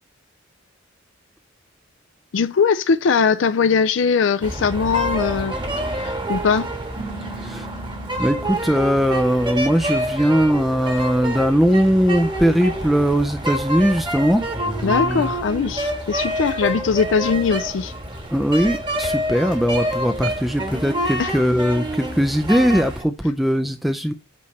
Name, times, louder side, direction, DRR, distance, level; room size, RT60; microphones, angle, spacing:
voice 1, 2.3-5.6 6.0-6.7 14.8-17.9 21.2-21.3, left 5 dB, 65° left, 0.4 m, -20 dB
sound 1, 4.4-23.0, equal, 25° right, 1.4 m, -27 dB
sound 2, 7.0-11.9, right 3 dB, 70° right, 2.7 m, -41 dB
voice 2, 7.4-7.7 8.2-15.3 18.3-24.1, equal, ahead, 0.4 m, -20 dB
8.4 x 3.2 x 6.4 m
head